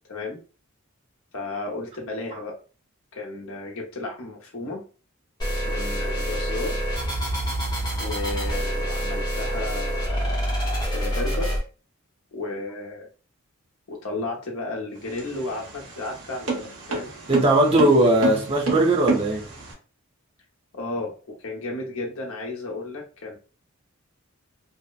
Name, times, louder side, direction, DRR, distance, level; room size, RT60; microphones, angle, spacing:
voice 1, 0.1-0.4 1.3-2.6 3.1-4.8 5.6-6.8 8.0-10.3 10.9-11.6 12.3-13.1 13.9-17.1 20.7-23.4, left 2 dB, 70° left, 0 dB, 0.8 m, -33 dB
sound 1, 5.4-11.6, equal, 20° left, 0.7 m, -26 dB
sound 2, 15.0-19.7, right 4 dB, 75° right, 1.0 m, -29 dB
voice 2, 17.3-19.4, right 1 dB, 25° right, -1 dB, 0.6 m, -19 dB
2.7 x 2.0 x 2.3 m, 0.36 s
head